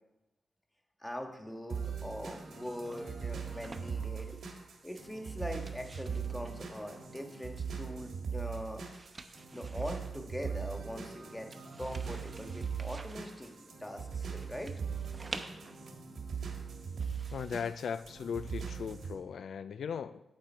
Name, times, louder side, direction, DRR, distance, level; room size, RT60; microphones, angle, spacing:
voice 1, 1.0-4.4 4.8-8.8 9.5-11.5 11.8-14.7, left 1 dB, 10° left, 4 dB, 1.5 m, -42 dB
sound 1, 1.7-19.1, right 6 dB, 75° right, 1.7 m, -40 dB
sound 2, 2.5-18.9, right 3 dB, 40° right, 0.9 m, -53 dB
voice 2, 17.3-20.2, left 7 dB, 75° left, 12 dB, 0.3 m, -38 dB
8.6 x 7.7 x 4.5 m, 0.99 s
cardioid pair, 65°, 0 cm